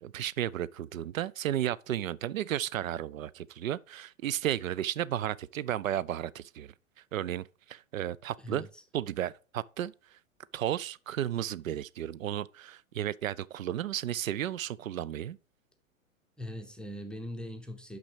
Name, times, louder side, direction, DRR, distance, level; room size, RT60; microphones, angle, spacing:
voice 1, 0.0-6.7 7.1-8.7 8.9-9.9 10.5-15.4, right 11 dB, 75° right, 0.5 m, -33 dB
voice 2, 8.4-8.8 16.4-18.0, left 1 dB, ahead, 0.6 m, -41 dB
6.0 x 5.9 x 5.0 m
figure-of-eight pair, 105°, 41 cm